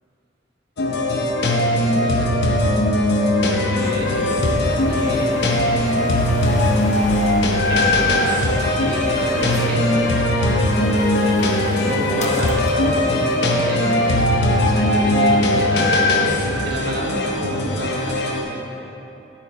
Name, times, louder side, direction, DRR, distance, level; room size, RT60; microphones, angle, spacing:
sound 1, 0.8-18.4, left 1 dB, 75° left, 0.7 m, -19 dB
voice 1, 1.9-2.4 3.6-6.1 7.7-10.0 11.9-18.7, right 1 dB, 65° right, -3 dB, 1.1 m, -30 dB
sound 2, 3.8-18.1, left 1 dB, 40° left, 0.5 m, -33 dB
9.3 x 4.4 x 4.1 m, 2.9 s
head